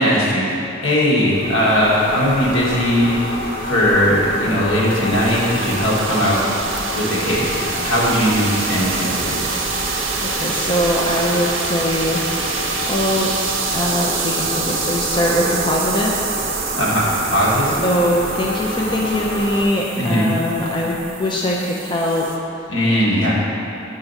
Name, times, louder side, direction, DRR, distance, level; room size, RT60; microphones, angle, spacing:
voice 1, 0.0-3.2 3.6-9.4 16.7-17.8 19.9-20.3 22.7-23.4, equal, 75° left, -5 dB, 1.5 m, -19 dB
sound 1, 1.3-19.6, equal, 50° left, 1.5 m, -28 dB
sound 2, 4.4-22.4, right 6 dB, 65° right, 0.7 m, -27 dB
voice 2, 10.2-13.3 13.7-16.1 17.8-22.3, equal, 25° left, -3 dB, 0.5 m, -21 dB
5.9 x 4.8 x 5.4 m, 2.9 s
head